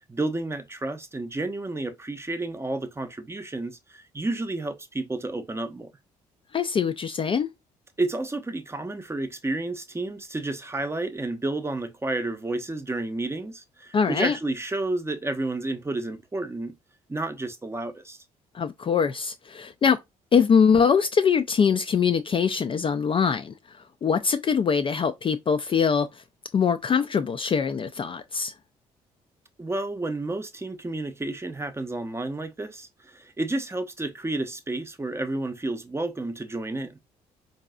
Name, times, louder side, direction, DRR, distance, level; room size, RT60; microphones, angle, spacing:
voice 1, 0.1-5.9 8.0-16.7 17.1-18.2 29.6-37.0, right 2 dB, 15° right, 0.7 m, -31 dB
voice 2, 6.5-7.5 13.9-14.4 18.5-20.0 20.3-23.5 24.0-26.1 26.5-28.5, left 6 dB, 30° left, 0.4 m, -23 dB
4.6 x 2.7 x 2.3 m
figure-of-eight pair, 45°, 18 cm